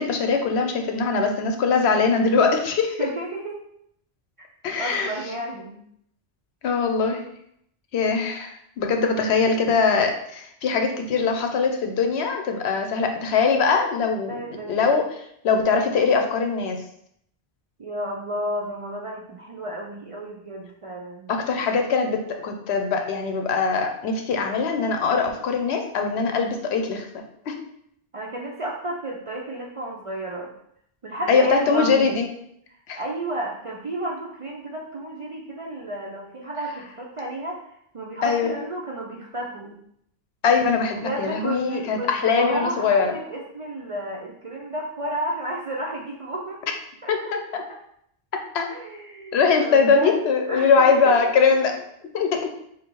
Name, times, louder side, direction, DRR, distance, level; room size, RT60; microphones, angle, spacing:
voice 1, 0.0-3.0 4.6-5.1 6.6-7.2 7.9-14.3 14.7-16.8 21.3-27.1 27.5-27.6 31.3-32.3 32.9-33.0 38.2-38.5 40.4-43.1 47.1-47.6 48.5-48.7 49.3-51.7 52.1-52.4, left 5 dB, 80° left, 4 dB, 0.9 m, -22 dB
voice 2, 3.0-3.6 4.4-4.5 4.8-5.8 14.3-14.9 17.8-21.3 28.1-30.5 31.0-32.2 33.0-39.8 41.0-46.6 47.0-47.1 47.7-47.8 48.7-50.2 50.5-51.8, right 1 dB, 45° right, -2 dB, 0.4 m, -32 dB
3.8 x 2.5 x 4.5 m, 0.72 s
omnidirectional pair, 1.1 m